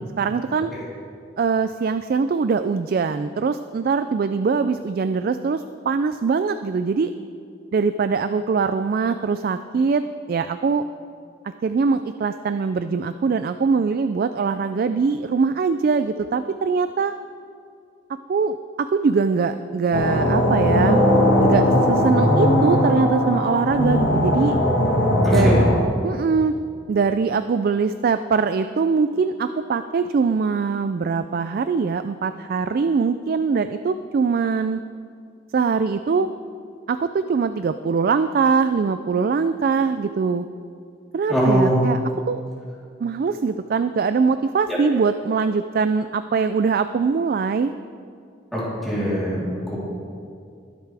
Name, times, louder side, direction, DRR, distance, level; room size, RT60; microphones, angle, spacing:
voice 1, 0.2-0.7 1.4-7.1 7.7-10.0 10.3-10.9 11.4-17.1 18.3-21.0 21.4-24.6 25.3-25.5 26.0-26.5 26.9-34.8 35.5-36.3 36.9-40.5 41.1-42.0 42.3-42.4 43.0-47.7, right 5 dB, 50° right, 10 dB, 0.3 m, -22 dB
sound 1, 19.9-25.8, left 1 dB, 60° left, 1.5 m, -18 dB
voice 2, 25.2-25.7 41.3-41.8 44.7-44.8 48.5-49.8, equal, ahead, -10 dB, 3.5 m, -22 dB
21.5 x 8.1 x 3.4 m, 2.3 s
head